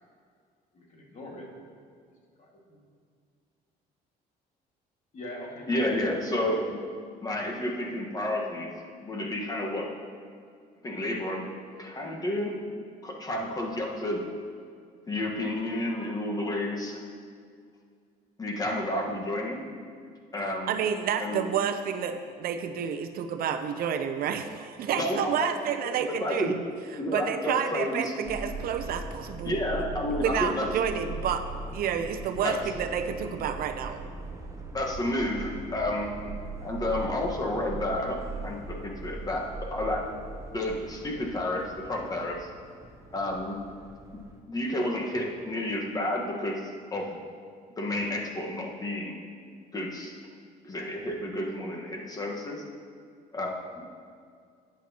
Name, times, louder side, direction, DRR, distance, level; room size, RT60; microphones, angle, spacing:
voice 1, 0.7-1.5 2.4-2.8 5.1-6.0, left 1 dB, 45° left, -1 dB, 2.0 m, -43 dB
voice 2, 5.7-6.8 7.2-8.7 9.0-9.9 10.8-11.5 11.8-12.6 13.0-14.2 15.1-17.0 18.4-19.6 20.3-20.7 21.2-21.5 24.9-25.5 26.0-26.6 27.0-28.1 29.4-30.7 32.4-32.6 34.7-36.1 36.6-40.0 40.5-42.5 43.1-43.6 44.1-47.2 47.8-49.2 49.7-50.2 50.6-52.6 53.3-53.8, left 1 dB, 20° left, 0 dB, 1.4 m, -31 dB
voice 3, 20.7-26.6 27.1-29.6 30.2-31.4 31.7-34.0, right 8 dB, 60° right, 7 dB, 0.6 m, -29 dB
Subway metro underground, 28.2-44.4, right 3 dB, 20° right, 1.0 m, -40 dB
11.0 x 8.8 x 2.9 m, 2.2 s
cardioid pair, 110°, 17 cm